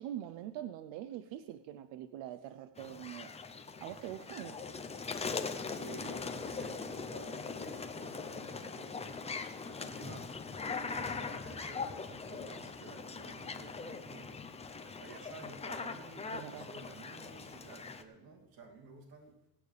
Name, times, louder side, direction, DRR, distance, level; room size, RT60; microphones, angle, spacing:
voice 1, 0.0-3.3 3.8-4.6 16.3-16.7, right 12 dB, 90° right, 12 dB, 0.7 m, -43 dB
sound 1, 2.8-18.0, left 4 dB, 15° left, 0.6 m, -41 dB
voice 2, 5.5-9.2 9.6-14.5 14.8-19.4, right 3 dB, 55° right, 1 dB, 2.7 m, -52 dB
23.0 x 9.2 x 3.4 m, 1.0 s
cardioid pair, 150°, 44 cm